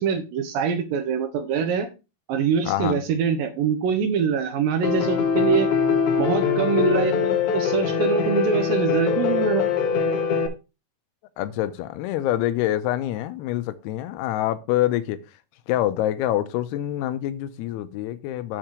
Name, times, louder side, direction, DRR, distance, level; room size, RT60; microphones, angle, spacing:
voice 1, 0.0-1.9 2.3-5.7 6.2-9.7, right 6 dB, 75° right, 2.3 m, -24 dB
voice 2, 2.6-3.0 11.4-15.2 15.7-18.6, left 13 dB, 85° left, 2.6 m, -26 dB
Piano, 4.8-10.5, left 6 dB, 70° left, 1.9 m, -22 dB
7.4 x 4.5 x 4.8 m
omnidirectional pair, 4.6 m